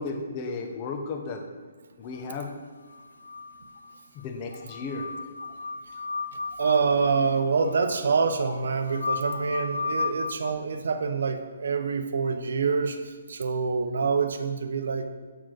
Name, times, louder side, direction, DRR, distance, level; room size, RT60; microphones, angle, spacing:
voice 1, 0.0-1.5 2.0-2.5 4.1-5.1, left 3 dB, 20° left, 4 dB, 0.6 m, -34 dB
sound 1, 2.9-3.9 4.2-4.3 4.5-10.5, left 4 dB, 75° left, 0.5 m, -34 dB
voice 2, 6.6-15.1, right 5 dB, 65° right, 8 dB, 0.6 m, -26 dB
7.6 x 4.3 x 4.7 m, 1.5 s
hypercardioid pair, 175°, 0 cm